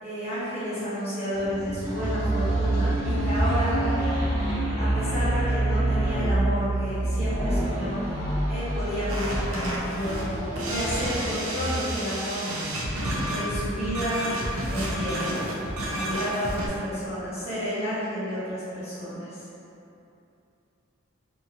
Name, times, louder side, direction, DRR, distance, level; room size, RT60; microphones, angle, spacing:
voice 1, 0.0-3.8 4.8-8.1 8.5-12.5 13.3-14.2 14.7-15.3 15.9-19.5, equal, 30° left, -12 dB, 0.8 m, -31 dB
sound 1, 1.4-12.1, equal, 15° right, 0.8 m, -31 dB
sound 2, 1.8-8.4, right 2 dB, 35° right, 0.3 m, -26 dB
sound 3, 9.1-16.7, right 1 dB, 90° right, 0.5 m, -31 dB
2.6 x 2.5 x 2.8 m, 2.7 s
head